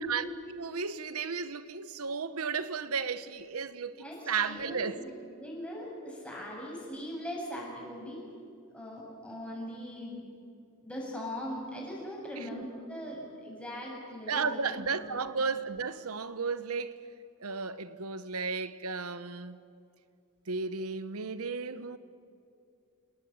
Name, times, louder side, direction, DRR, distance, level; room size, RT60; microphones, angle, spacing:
voice 1, 0.1-5.0 12.4-12.6 14.3-17.0 17.4-19.6 20.5-22.0, right 5 dB, 85° right, 1.0 m, -34 dB
voice 2, 4.0-5.1 5.4-8.3 8.7-10.3 10.8-15.2, equal, 5° left, 7.6 m, -40 dB
29.5 x 18.5 x 8.9 m
head